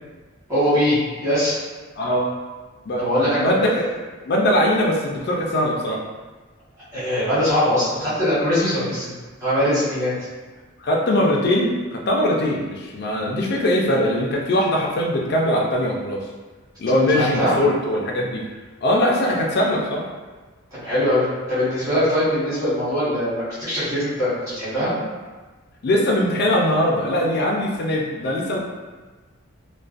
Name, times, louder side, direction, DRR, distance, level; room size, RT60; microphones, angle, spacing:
voice 1, 0.5-1.6 3.0-3.5 6.9-9.1 9.4-10.1 17.1-17.5 20.8-24.9, equal, 15° right, -13 dB, 1.1 m, -21 dB
voice 2, 2.0-2.3 2.9-3.9 4.2-6.0 6.9-7.0 10.8-16.3 16.8-18.5 18.8-20.1 25.8-28.6, left 1 dB, 50° left, -1 dB, 0.4 m, -21 dB
2.4 x 2.2 x 2.4 m, 1.3 s
head